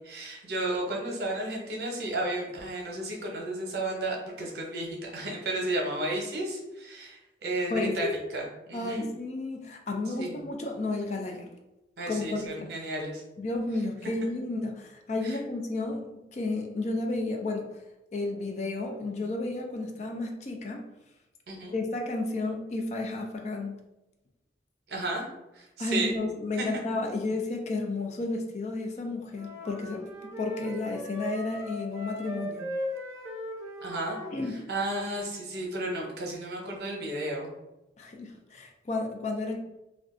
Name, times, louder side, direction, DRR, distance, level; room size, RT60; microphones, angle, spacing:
voice 1, 0.0-8.1 8.3-9.0 10.2-10.4 12.0-13.2 15.2-15.4 21.5-21.7 24.9-25.2 25.5-26.1 26.5-26.7 33.8-34.2 34.7-37.5, right 2 dB, 60° right, -1 dB, 0.7 m, -33 dB
voice 2, 7.7-8.1 8.7-11.5 12.1-12.7 13.4-17.7 18.1-20.9 21.7-23.8 25.8-32.6 34.3-34.6 38.0-39.6, left 2 dB, 40° left, 2 dB, 0.3 m, -32 dB
sound 1, 29.3-34.5, left 1 dB, 15° right, 0.5 m, -38 dB
2.4 x 2.3 x 3.6 m, 0.96 s
head